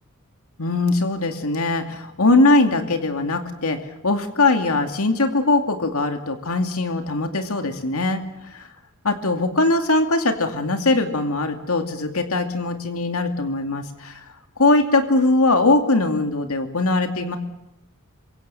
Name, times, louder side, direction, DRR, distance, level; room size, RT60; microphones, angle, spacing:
voice 1, 0.6-8.2 8.5-8.7 9.0-14.2 14.6-17.4, left 2 dB, 85° left, 6 dB, 2.5 m, -21 dB
27.5 x 25.0 x 7.0 m, 0.88 s
head